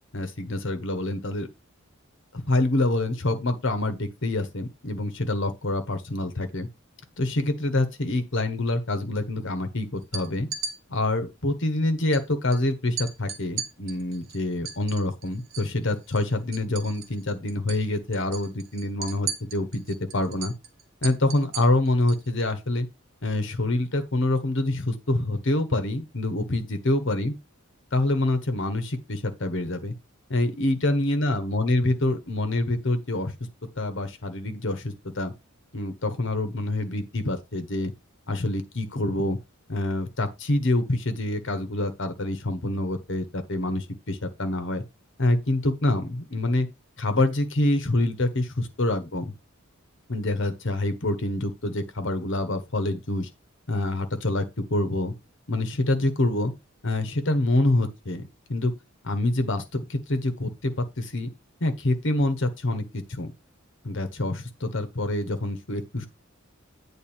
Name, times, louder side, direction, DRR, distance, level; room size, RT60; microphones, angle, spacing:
voice 1, 0.1-1.5 2.3-6.7 7.2-10.5 10.9-20.5 21.0-22.9 23.2-27.3 27.9-29.9 30.3-33.3 33.8-35.3 35.7-37.9 38.3-39.4 39.7-44.8 45.2-46.7 47.0-49.3 50.1-53.3 53.7-54.4 54.7-55.1 55.5-56.5 56.8-58.2 58.5-58.7 59.0-61.3 61.6-63.3 63.8-66.1, left 2 dB, 60° left, 1.3 m, -26 dB
sound 1, 10.0-10.7 12.1-12.2 12.5-12.6 13.0-15.7 16.0-17.2 17.5-17.8 18.1-22.3, right 7 dB, 65° right, 1.4 m, -36 dB
8.9 x 3.8 x 5.7 m
head